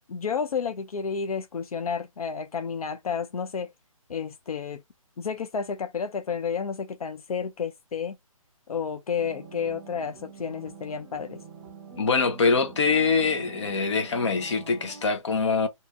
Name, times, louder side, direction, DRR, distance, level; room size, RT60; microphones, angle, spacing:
voice 1, 0.1-3.7 4.1-4.8 5.2-8.2 8.7-11.4, left 6 dB, 85° left, 0.5 m, -31 dB
sound 1, 9.2-15.0, right 5 dB, 20° right, 1.1 m, -45 dB
voice 2, 12.0-15.7, left 4 dB, 55° left, 1.0 m, -24 dB
2.7 x 2.6 x 3.4 m
hypercardioid pair, 165°, 18 cm